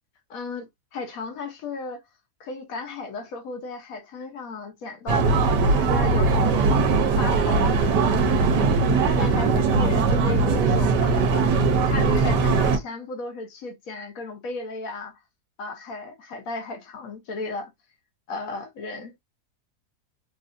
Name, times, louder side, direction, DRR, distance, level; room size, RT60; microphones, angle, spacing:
voice 1, 0.3-2.0 2.4-5.4 5.7-6.7 6.9-8.1 8.6-11.5 11.8-15.2 15.6-17.7 18.3-19.1, left 3 dB, 60° left, 1.2 m, -35 dB
sound 1, 5.1-12.8, right 4 dB, 85° right, 1.4 m, -20 dB
3.8 x 2.5 x 2.5 m
omnidirectional pair, 1.8 m